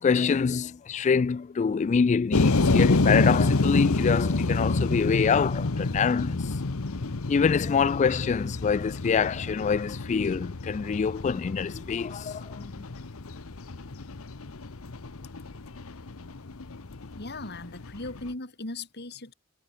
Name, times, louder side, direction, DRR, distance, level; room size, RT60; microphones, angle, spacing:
voice 1, 0.0-6.4 7.3-12.7, left 6 dB, 35° left, 0.3 m, -25 dB
sound 1, 2.3-18.3, left 3 dB, 85° left, 1.0 m, -28 dB
voice 2, 17.2-19.3, left 2 dB, 50° left, 3.5 m, -38 dB
head